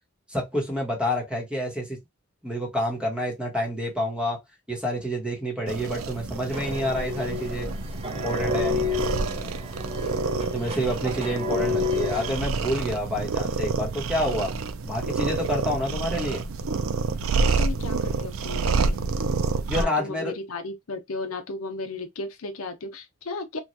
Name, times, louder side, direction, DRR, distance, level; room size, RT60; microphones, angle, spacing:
voice 1, 0.3-2.0 2.4-4.4 4.7-7.7 8.2-9.0 10.5-14.5 14.8-16.4 19.7-20.3, equal, 5° right, 1.0 m, -28 dB
sound 1, 5.7-19.9, right 4 dB, 70° right, 0.4 m, -28 dB
sound 2, 6.5-12.5, left 5 dB, 30° right, 0.7 m, -31 dB
voice 2, 17.6-19.0 19.7-23.6, left 3 dB, 75° left, 0.7 m, -35 dB
3.1 x 2.3 x 2.6 m
head